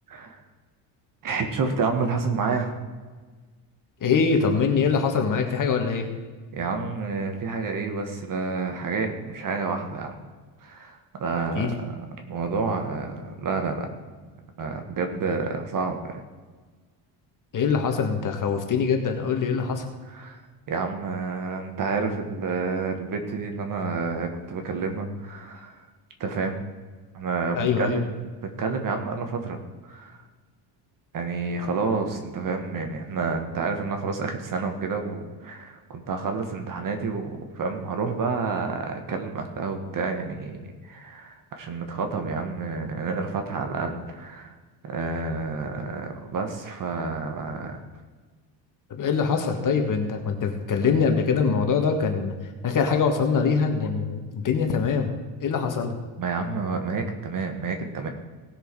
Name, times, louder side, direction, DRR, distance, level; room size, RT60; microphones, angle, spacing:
voice 1, 0.1-0.4 1.2-2.7 6.5-10.2 10.6-13.9 14.6-16.1 20.1-20.4 20.7-25.9 26.2-26.6 27.1-28.1 28.6-30.2 31.1-44.5 44.8-47.8 56.2-58.1, right 4 dB, 45° right, 5 dB, 1.8 m, -29 dB
voice 2, 4.0-6.1 11.4-11.7 17.5-19.9 27.6-28.0 48.9-52.3 52.6-55.1 55.4-55.9, left 5 dB, 40° left, 4 dB, 1.8 m, -23 dB
18.0 x 6.5 x 4.8 m, 1.4 s
cardioid pair, 140°, 46 cm